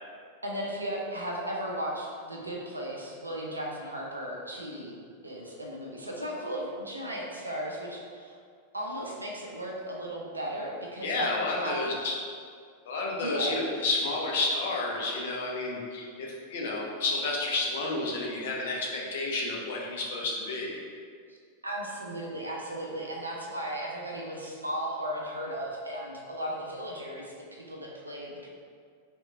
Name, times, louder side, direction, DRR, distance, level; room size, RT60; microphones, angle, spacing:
voice 1, 0.4-8.4 8.7-11.8 13.2-13.5 21.3-21.4 21.6-28.5, equal, 80° right, -2 dB, 0.7 m, -36 dB
voice 2, 11.0-12.2 12.8-20.8, left 2 dB, 55° left, -2 dB, 0.8 m, -30 dB
3.4 x 3.0 x 4.7 m, 2.1 s
figure-of-eight pair, 90°, 0 cm